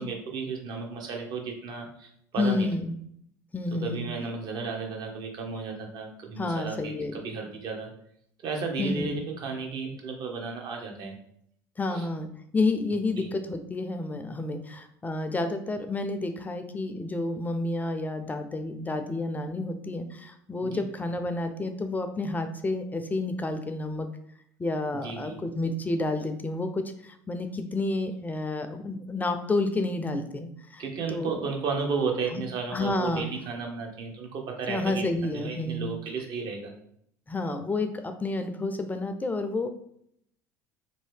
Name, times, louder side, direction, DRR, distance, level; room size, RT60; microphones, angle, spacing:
voice 1, 0.0-2.7 3.8-7.9 8.4-11.1 11.9-12.1 13.2-13.3 20.6-20.8 25.0-25.4 30.8-35.0 35.3-36.7, right 5 dB, 50° right, 2 dB, 0.8 m, -33 dB
voice 2, 2.4-2.9 3.5-4.1 6.4-7.2 8.8-9.2 11.8-12.3 12.5-24.1 24.6-30.8 31.1-31.5 32.3-32.4 32.7-33.3 34.7-35.9 37.3-39.7, left 2 dB, 20° left, 8 dB, 0.4 m, -30 dB
2.7 x 2.6 x 3.3 m, 0.70 s
hypercardioid pair, 70°, 9 cm